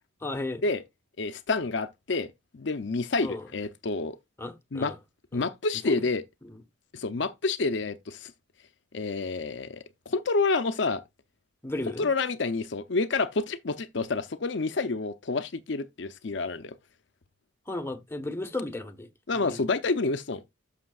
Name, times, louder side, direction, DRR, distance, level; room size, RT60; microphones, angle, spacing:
voice 1, 0.2-0.6 3.2-3.5 4.4-4.9 5.3-5.4 5.9-6.0 6.4-6.6 11.6-12.1 17.7-19.6, left 2 dB, 10° left, 1.1 m, -35 dB
voice 2, 1.2-4.2 4.7-4.9 5.3-6.2 6.9-8.3 8.9-11.0 12.0-16.8 19.3-20.4, left 3 dB, 60° left, 0.6 m, -29 dB
11.5 x 6.6 x 2.4 m
head